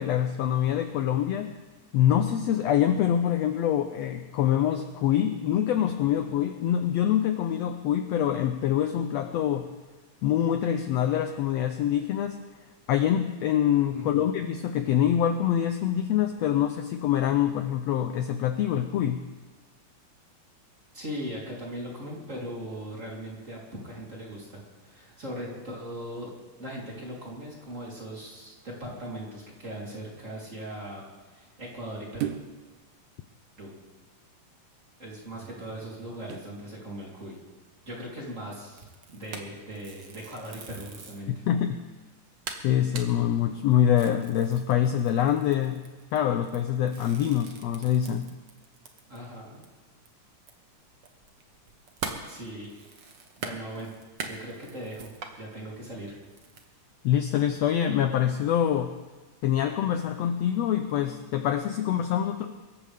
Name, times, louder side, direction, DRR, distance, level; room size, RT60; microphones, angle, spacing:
voice 1, 0.0-1.6 1.9-9.7 10.2-12.4 12.9-19.2 41.3-41.8 42.6-45.8 46.1-48.3 57.0-58.9 59.4-62.5, left 10 dB, 80° left, 7 dB, 1.5 m, -25 dB
voice 2, 13.9-14.3 20.9-26.3 26.6-31.0 31.3-32.3 33.6-33.7 35.0-37.4 37.8-41.3 49.1-49.6 52.2-52.7 53.4-53.9 54.2-55.1 55.3-56.2, equal, 20° right, -4 dB, 3.8 m, -39 dB
sound 1, 32.2-32.7 35.3-36.6 37.1-37.3, right 11 dB, 75° right, 2.3 m, -37 dB
sound 2, 38.7-41.3 41.8-41.9 42.1-42.2 42.5-49.3 49.6-49.7 50.1-55.4 55.9-56.6, right 5 dB, 55° right, 1.3 m, -42 dB
24.0 x 14.0 x 3.6 m, 1.3 s
omnidirectional pair, 3.8 m